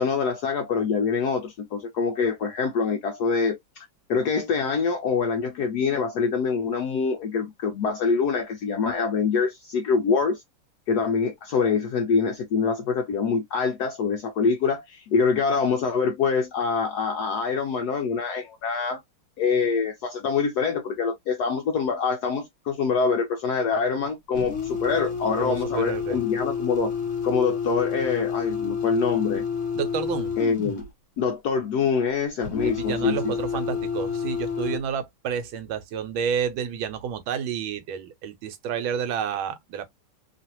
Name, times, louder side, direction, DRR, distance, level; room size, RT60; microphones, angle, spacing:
voice 1, 0.0-10.4 10.9-19.0 19.4-26.9 27.2-29.4 30.4-30.9 31.2-33.3, left 5 dB, 75° left, 0.9 m, -25 dB
sound 1, 24.3-30.9 32.4-34.8, left 6 dB, 45° left, 1.1 m, -29 dB
voice 2, 25.4-26.2 29.7-30.3 32.6-39.9, right 7 dB, 80° right, 1.4 m, -30 dB
3.1 x 2.4 x 2.8 m
omnidirectional pair, 2.3 m